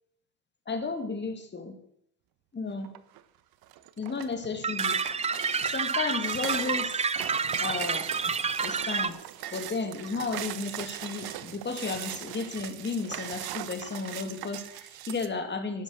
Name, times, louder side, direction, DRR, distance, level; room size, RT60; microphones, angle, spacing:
voice 1, 0.7-1.8 2.5-2.9 4.0-5.0 5.7-7.0 7.5-8.3 8.6-9.2 9.5-15.8, left 4 dB, 25° left, 6 dB, 2.6 m, -33 dB
sound 1, 2.8-3.2 3.6-15.3, right 13 dB, 60° right, 1.1 m, -40 dB
sound 2, 4.6-9.1, right 5 dB, 15° right, 0.5 m, -29 dB
sound 3, 5.1-5.3 6.3-6.5 7.6-7.8 8.8-9.1 10.0-10.2 11.3-11.5 12.6-12.8 13.8-14.2, right 5 dB, 40° right, 3.0 m, -51 dB
11.5 x 11.0 x 6.5 m, 0.70 s
supercardioid pair, 95°, 41 cm